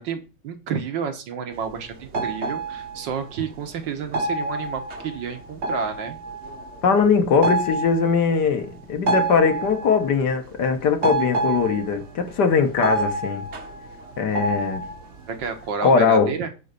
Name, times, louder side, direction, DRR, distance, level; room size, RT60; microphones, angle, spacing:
voice 1, 0.0-6.2 15.3-16.5, right 6 dB, 75° right, 1.9 m, -30 dB
sound 1, 1.6-1.8 2.0-3.6 3.9-4.0 4.1-10.2 10.6-15.7, right 2 dB, 45° right, 1.1 m, -28 dB
voice 2, 6.8-13.5 14.2-14.8 15.8-16.3, left 5 dB, 65° left, 1.7 m, -20 dB
9.4 x 3.9 x 6.8 m
omnidirectional pair, 2.0 m